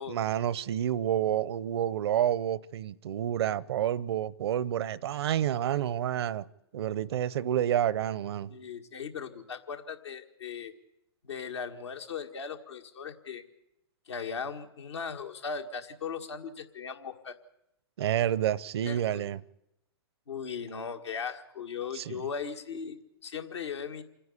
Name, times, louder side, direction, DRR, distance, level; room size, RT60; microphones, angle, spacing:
voice 1, 0.1-6.5 6.7-8.5 18.0-19.4 21.9-22.2, right 11 dB, 70° right, 0.6 m, -29 dB
voice 2, 8.5-10.7 11.2-13.4 14.1-17.4 18.8-19.2 20.3-24.0, left 6 dB, 85° left, 1.7 m, -38 dB
27.0 x 10.0 x 9.8 m
hypercardioid pair, 115°, 14 cm